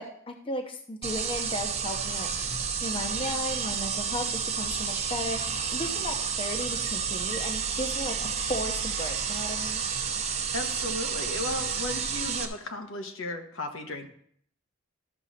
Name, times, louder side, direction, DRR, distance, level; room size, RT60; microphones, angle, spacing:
voice 1, 0.0-2.3 2.8-9.8, left 1 dB, 25° left, 4 dB, 0.8 m, -35 dB
sound 1, 1.0-12.5, right 6 dB, 35° right, 0.9 m, -30 dB
voice 2, 10.5-14.1, left 2 dB, 80° left, 4 dB, 1.2 m, -35 dB
13.5 x 6.3 x 4.1 m, 0.63 s
head